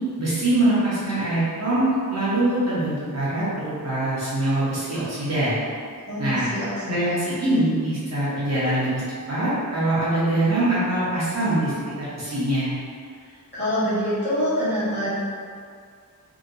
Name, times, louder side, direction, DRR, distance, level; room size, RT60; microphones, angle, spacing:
voice 1, 0.2-5.6 6.2-6.5 6.9-9.0 9.3-11.7 12.0-12.7, right 1 dB, 45° right, -11 dB, 1.0 m, -23 dB
voice 2, 6.1-7.2 13.5-15.1, equal, 30° left, -13 dB, 1.4 m, -25 dB
2.9 x 2.8 x 2.6 m, 2.1 s
wide cardioid pair, 155°, 36 cm